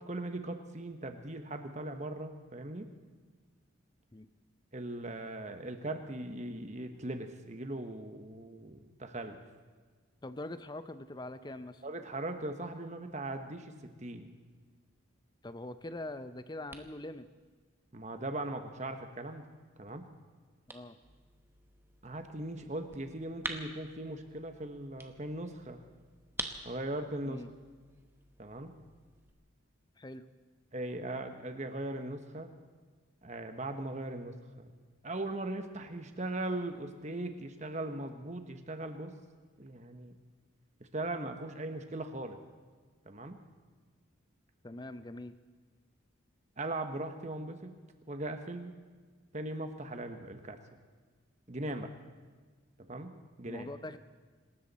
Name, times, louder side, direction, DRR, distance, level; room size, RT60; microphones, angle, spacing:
voice 1, 0.0-2.9 4.7-9.4 11.8-14.3 17.9-19.5 19.8-20.1 22.0-25.8 26.6-27.4 28.4-28.7 30.7-32.5 33.2-34.7 35.0-39.1 39.6-40.1 40.8-42.4 43.0-43.4 46.6-47.8 48.1-48.8 49.3-50.6 51.5-51.9 52.9-53.7, right 2 dB, 35° right, 7 dB, 1.2 m, -39 dB
voice 2, 10.2-11.8 15.4-17.3 20.7-21.0 27.2-27.5 30.0-30.3 44.6-45.4 53.5-54.0, left 1 dB, 20° left, 12 dB, 0.6 m, -43 dB
sound 1, 15.8-29.3, right 2 dB, 10° right, 0.9 m, -49 dB
26.5 x 13.0 x 4.2 m, 1.4 s
head